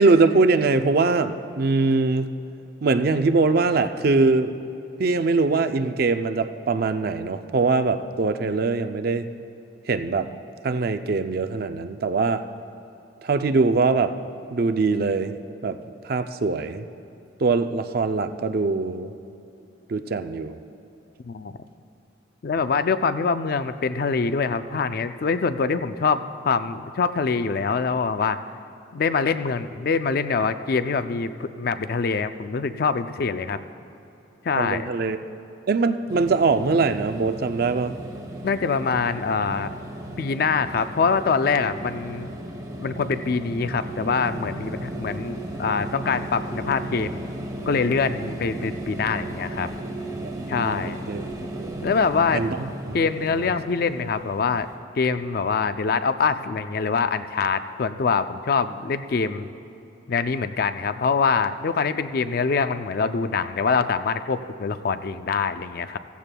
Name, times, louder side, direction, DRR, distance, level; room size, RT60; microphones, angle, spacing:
voice 1, 0.0-2.3 2.8-4.6 5.0-9.3 9.9-10.3 10.6-12.4 13.2-14.1 14.5-15.3 15.6-15.8 16.0-16.9 17.4-19.1 19.9-20.6 34.6-35.2 35.7-37.9 50.2-51.2 51.6-51.8 52.3-53.0 53.3-53.4, right 3 dB, 50° right, 9 dB, 0.4 m, -22 dB
voice 2, 21.2-21.6 22.4-28.4 28.9-33.6 34.4-34.9 38.4-39.7 40.2-42.3 42.8-47.2 47.7-49.7 50.5-51.0 51.8-52.4 52.9-54.7 55.0-59.5 60.1-66.0, left 5 dB, 50° left, 11 dB, 0.4 m, -24 dB
sound 1, 36.1-54.8, right 1 dB, 20° right, 1.0 m, -35 dB
15.5 x 15.0 x 2.2 m, 2.9 s
head